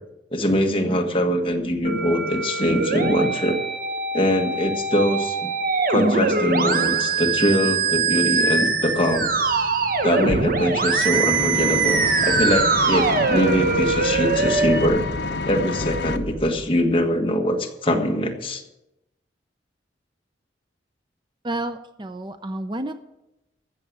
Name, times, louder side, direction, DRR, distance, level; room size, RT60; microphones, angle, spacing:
voice 1, 0.3-3.6 4.1-5.4 5.9-9.3 10.0-15.1 15.5-18.6, equal, 30° left, 2 dB, 1.6 m, -22 dB
Musical instrument, 1.8-14.9, right 4 dB, 50° right, 1.1 m, -23 dB
sound 1, 1.9-17.0, left 1 dB, 5° left, 3.5 m, -41 dB
Engine, 11.1-16.2, left 3 dB, 70° left, 0.8 m, -29 dB
voice 2, 21.4-22.9, right 1 dB, 25° right, 9 dB, 0.6 m, -30 dB
14.5 x 6.8 x 8.6 m, 0.91 s
head